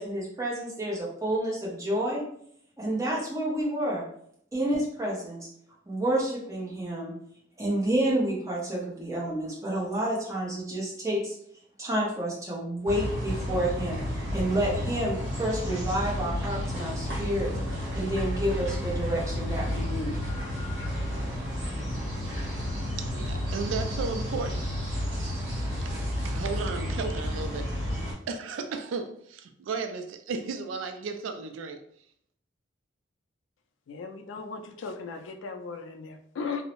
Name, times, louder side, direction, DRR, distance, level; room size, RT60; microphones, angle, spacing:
voice 1, 0.0-2.2 2.8-4.0 4.5-5.5 5.9-7.1 7.6-11.3 11.8-17.5 17.9-20.2, right 1 dB, 15° right, -4 dB, 0.7 m, -29 dB
sound 1, 12.9-28.1, equal, 55° right, 1.1 m, -31 dB
voice 2, 23.0-24.7 25.8-26.0 26.2-27.7 28.3-31.8, right 4 dB, 75° right, 7 dB, 0.3 m, -34 dB
voice 3, 33.9-36.7, left 4 dB, 70° left, 5 dB, 0.3 m, -37 dB
2.6 x 2.0 x 2.9 m, 0.67 s
head